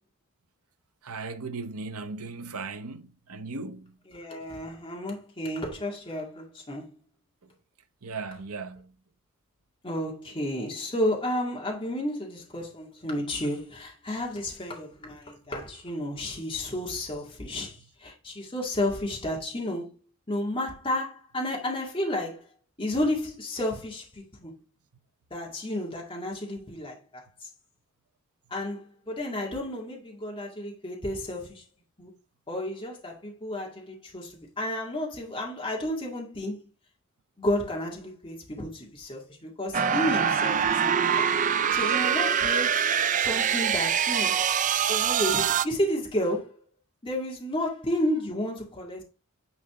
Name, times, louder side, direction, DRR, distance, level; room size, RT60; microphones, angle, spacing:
voice 1, 1.0-4.0 7.4-7.5 8.0-8.9, right 4 dB, 80° right, 1.0 m, -37 dB
voice 2, 4.1-7.0 9.8-19.9 20.3-22.4 22.8-24.6 25.3-27.5 28.5-31.6 32.0-32.1 32.5-36.7 37.4-41.3 41.7-42.9 43.2-44.4 44.9-46.6 47.0-49.0, left 1 dB, 25° left, 2.1 m, -32 dB
sound 1, 39.7-45.7, right 8 dB, 35° right, 0.4 m, -24 dB
9.9 x 4.2 x 3.7 m
head